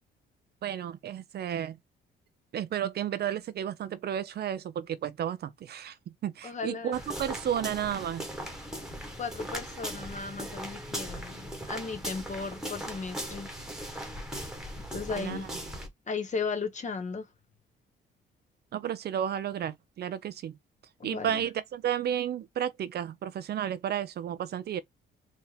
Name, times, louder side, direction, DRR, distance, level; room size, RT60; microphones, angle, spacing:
voice 1, 0.6-1.8 2.5-8.3 15.2-15.4 18.7-20.6 21.0-24.8, right 10 dB, 55° right, 0.5 m, -32 dB
voice 2, 6.4-7.0 9.2-13.5 14.9-15.5 16.1-17.3 21.0-21.4, left 4 dB, 35° left, 1.1 m, -36 dB
sound 1, 6.9-15.9, equal, 5° right, 1.3 m, -39 dB
4.5 x 2.7 x 3.3 m
cardioid pair, 90°, 20 cm